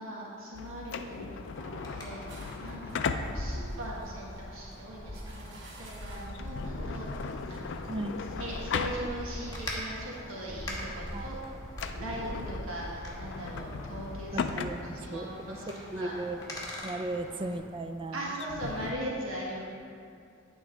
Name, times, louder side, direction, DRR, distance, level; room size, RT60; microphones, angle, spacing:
voice 1, 0.0-1.6 1.9-7.9 8.2-11.4 11.9-14.4 14.8-16.2 18.1-19.6, right 1 dB, 90° right, -4 dB, 1.3 m, -40 dB
sound 1, 0.5-9.5 9.9-10.0 10.7-10.9 11.2-11.3 11.7-18.9, left 5 dB, 65° left, 0.4 m, -38 dB
Wind, 1.5-17.6, left 1 dB, 20° left, 1.2 m, -42 dB
sound 2, 1.8-6.5, right 2 dB, 60° right, 0.9 m, -54 dB
voice 2, 7.9-8.2 11.1-11.3 14.3-15.6 15.9-16.4 16.8-18.2, right 2 dB, 25° right, 8 dB, 0.3 m, -36 dB
9.3 x 3.8 x 4.9 m, 2.4 s
head